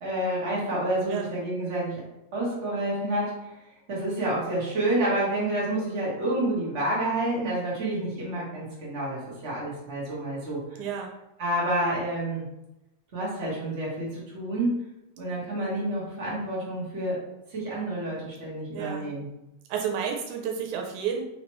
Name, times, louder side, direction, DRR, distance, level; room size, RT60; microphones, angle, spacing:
voice 1, 0.0-2.0 2.3-3.6 3.9-10.8 11.4-12.4 13.1-14.8 15.2-17.2 17.5-19.3, right 1 dB, 50° right, -6 dB, 0.8 m, -29 dB
voice 2, 10.8-11.1 18.7-19.1 19.7-21.2, right 7 dB, 85° right, 1 dB, 2.0 m, -30 dB
4.8 x 3.0 x 3.0 m, 0.91 s
omnidirectional pair, 3.4 m